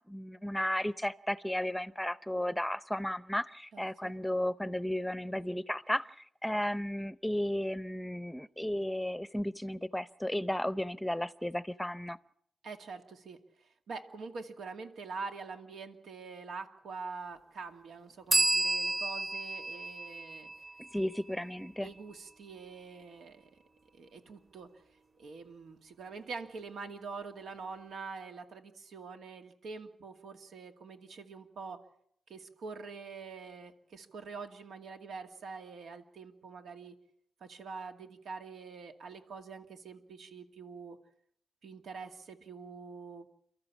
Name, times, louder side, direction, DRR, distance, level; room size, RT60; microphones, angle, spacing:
voice 1, 0.0-12.2 20.8-21.9, left 1 dB, 5° left, 16 dB, 0.7 m, -34 dB
voice 2, 3.7-4.1 12.6-20.5 21.8-23.5 23.9-24.7 25.2-31.8 32.3-37.0 37.4-41.0 41.6-43.3, right 4 dB, 90° right, 5 dB, 2.3 m, -45 dB
sound 1, 18.3-21.9, right 2 dB, 40° right, 3.2 m, -32 dB
29.5 x 13.5 x 7.3 m, 0.70 s
cardioid pair, 85°, 0 cm